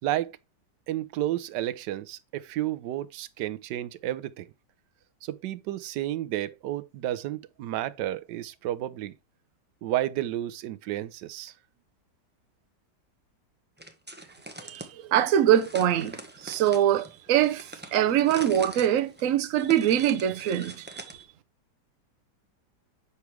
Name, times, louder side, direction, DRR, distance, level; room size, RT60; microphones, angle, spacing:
voice 1, 0.0-0.4 0.9-4.5 5.2-9.1 9.8-11.5, right 13 dB, 80° right, 1.2 m, -31 dB
sound 1, 13.8-14.9 15.5-21.2, right 1 dB, 10° right, 0.5 m, -43 dB
voice 2, 14.6-16.1 16.4-21.0, right 11 dB, 60° right, 1.0 m, -23 dB
8.3 x 3.2 x 5.9 m
omnidirectional pair, 1.9 m